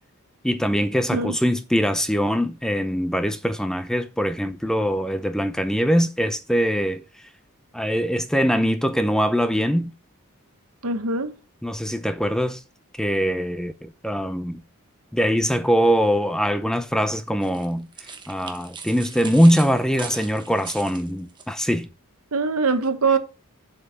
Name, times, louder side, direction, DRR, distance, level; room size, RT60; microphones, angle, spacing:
voice 1, 0.4-7.0 7.7-9.9 11.6-12.6 13.0-14.6 15.1-17.9 18.3-21.9, equal, 5° left, 0.6 m, -22 dB
voice 2, 10.8-11.3 22.3-23.2, right 4 dB, 70° right, 1.2 m, -22 dB
sound 1, 17.4-21.5, right 5 dB, 20° right, 1.2 m, -39 dB
7.8 x 5.5 x 5.8 m
head